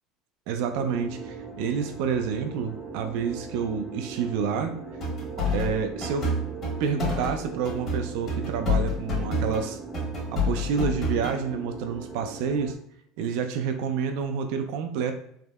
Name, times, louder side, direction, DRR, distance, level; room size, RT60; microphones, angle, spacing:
voice 1, 0.5-4.7 5.5-6.3 6.8-9.8 10.3-12.7 13.2-15.1, right 6 dB, 75° right, 7 dB, 0.3 m, -28 dB
sound 1, 0.7-12.8, right 4 dB, 10° right, 0.6 m, -39 dB
sound 2, 5.0-7.4 7.6-9.7 9.9-11.4, left 2 dB, 45° left, 1.3 m, -28 dB
3.4 x 2.0 x 2.3 m, 0.71 s
supercardioid pair, 100°, 0 cm